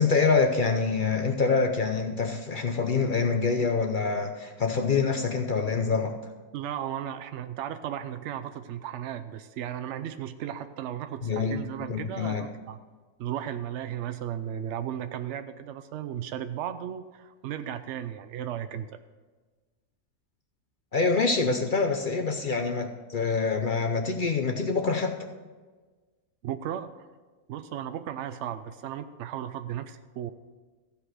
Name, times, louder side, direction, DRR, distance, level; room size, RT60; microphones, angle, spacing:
voice 1, 0.0-6.2 11.2-11.6 11.9-12.5 20.9-25.1, left 4 dB, 50° left, 4 dB, 0.6 m, -25 dB
voice 2, 6.5-12.8 13.2-19.0 26.4-27.1 27.5-30.3, right 10 dB, 75° right, 10 dB, 0.6 m, -35 dB
14.5 x 5.4 x 6.3 m, 1.3 s
omnidirectional pair, 1.7 m